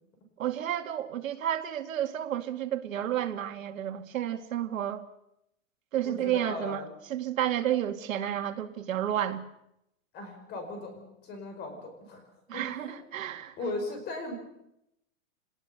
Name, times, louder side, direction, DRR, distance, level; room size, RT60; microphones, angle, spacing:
voice 1, 0.4-5.0 5.9-9.4 12.5-13.5, right 11 dB, 75° right, 2.3 m, -31 dB
voice 2, 6.0-6.9 10.1-12.2 12.5-13.0 13.6-14.4, left 2 dB, 25° left, 5.2 m, -38 dB
26.5 x 19.5 x 6.8 m
supercardioid pair, 165°, 40 cm